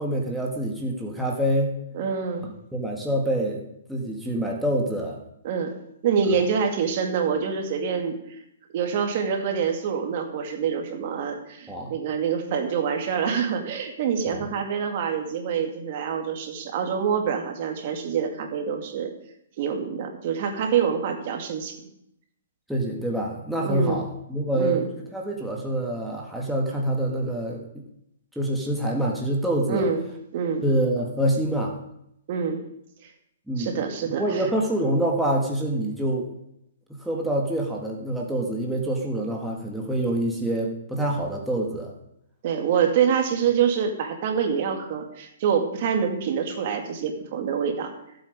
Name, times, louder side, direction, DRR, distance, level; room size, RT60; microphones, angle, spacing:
voice 1, 0.0-1.8 2.7-3.6 3.9-5.2 11.7-11.9 14.3-14.4 22.7-24.8 25.1-27.7 28.3-29.9 30.6-31.7 33.5-33.8 34.1-36.3 37.0-41.9, right 1 dB, ahead, -2 dB, 1.6 m, -26 dB
voice 2, 1.9-2.5 5.4-5.7 6.0-8.2 8.7-19.1 19.6-21.8 23.6-24.0 24.5-24.9 29.7-30.0 30.3-30.6 32.3-32.6 33.0-33.1 33.6-34.4 42.4-47.9, right 7 dB, 45° right, 4 dB, 2.0 m, -26 dB
14.0 x 7.9 x 5.1 m, 0.79 s
hypercardioid pair, 150°, 0 cm